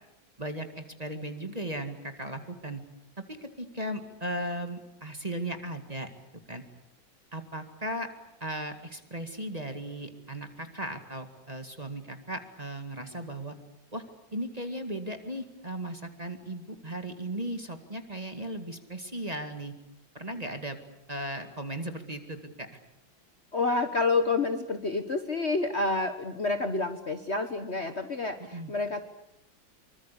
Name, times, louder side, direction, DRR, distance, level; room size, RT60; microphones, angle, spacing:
voice 1, 0.4-2.8 3.3-6.1 6.5-6.6 7.3-8.1 8.4-13.6 13.9-14.0 14.3-19.7 20.1-20.8 21.1-22.8 28.5-28.7, right 1 dB, 20° right, 7 dB, 2.0 m, -36 dB
voice 2, 23.5-29.0, left 3 dB, 40° left, 8 dB, 1.4 m, -28 dB
25.0 x 24.0 x 8.4 m, 0.82 s
omnidirectional pair, 2.1 m